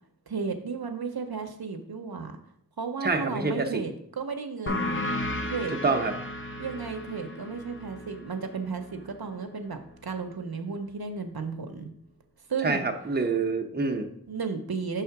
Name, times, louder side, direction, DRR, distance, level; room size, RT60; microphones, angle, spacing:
voice 1, 0.3-2.4 2.8-5.1 5.5-5.7 6.6-11.9 12.5-12.8 14.3-15.0, right 5 dB, 75° right, 5 dB, 0.7 m, -34 dB
voice 2, 3.0-3.8 5.8-6.1 12.6-14.1, right 3 dB, 25° right, 4 dB, 0.7 m, -26 dB
sound 1, 4.7-9.8, left 1 dB, 35° left, 0.6 m, -34 dB
5.6 x 3.5 x 5.7 m, 0.67 s
wide cardioid pair, 45°, 37 cm